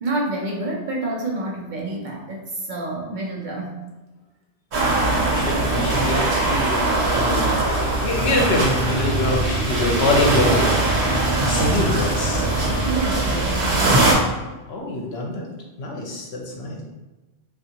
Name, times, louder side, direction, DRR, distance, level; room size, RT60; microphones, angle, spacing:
voice 1, 0.0-3.9 5.9-6.0 12.8-14.2, right 2 dB, 55° right, -2 dB, 0.6 m, -28 dB
sound 1, 4.7-14.1, right 2 dB, 90° right, 1.1 m, -21 dB
voice 2, 5.0-10.7 11.4-12.5 14.7-15.5 15.8-16.8, left 2 dB, 70° left, -1 dB, 0.9 m, -25 dB
sound 2, 8.1-13.3, right 1 dB, 50° left, 0.5 m, -30 dB
3.5 x 2.5 x 2.8 m, 1.1 s
omnidirectional pair, 1.1 m